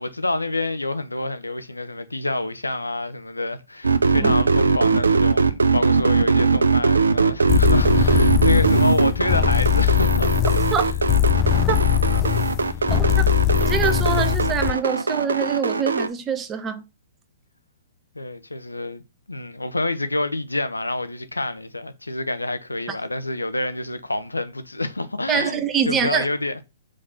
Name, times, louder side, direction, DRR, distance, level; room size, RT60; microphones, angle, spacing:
voice 1, 0.0-10.3 18.1-19.0 19.3-26.6, left 2 dB, 90° left, 0.7 m, -27 dB
sound 1, 3.8-16.1, right 4 dB, 80° right, 0.7 m, -20 dB
sound 2, 7.5-14.8, left 11 dB, 30° left, 0.5 m, -21 dB
voice 2, 12.9-13.3 13.6-16.8 25.3-26.3, right 7 dB, 20° right, 0.9 m, -25 dB
5.0 x 4.2 x 5.7 m
figure-of-eight pair, 120°, 0 cm